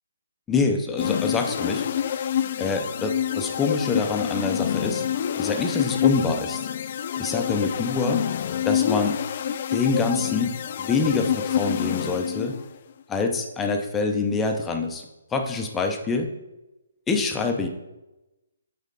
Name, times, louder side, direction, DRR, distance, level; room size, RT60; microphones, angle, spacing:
voice 1, 0.5-1.9 2.6-5.1 5.4-6.6 7.2-8.2 8.6-9.2 9.7-12.6 13.1-15.0 15.3-16.3 17.1-17.7, left 4 dB, 10° left, 4 dB, 0.7 m, -25 dB
sound 1, 1.0-12.8, left 9 dB, 45° left, 0.3 m, -27 dB
8.1 x 4.2 x 4.0 m, 1.0 s
figure-of-eight pair, 140°, 0 cm